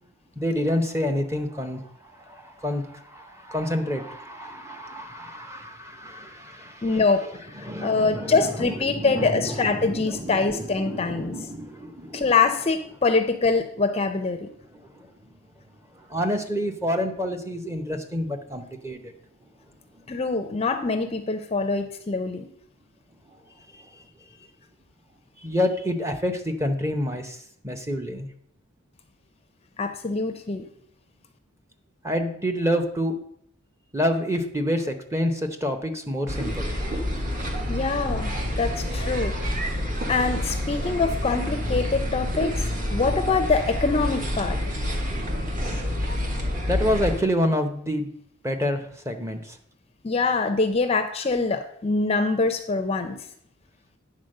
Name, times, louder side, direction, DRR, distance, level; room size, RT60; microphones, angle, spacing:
voice 1, 0.4-1.8 2.3-7.0 7.6-8.4 8.9-12.2 16.1-19.1 25.4-27.4 27.6-28.3 32.0-33.2 33.9-36.7 46.7-48.1 48.4-49.5, equal, 15° right, 6 dB, 0.8 m, -28 dB
voice 2, 6.8-11.4 12.1-14.5 20.1-22.5 29.8-30.6 37.7-39.3 39.9-44.6 50.0-53.2, left 4 dB, 30° left, 8 dB, 0.5 m, -24 dB
sound 1, 36.3-47.2, equal, 40° right, 1.4 m, -28 dB
9.3 x 4.2 x 6.5 m, 0.69 s
head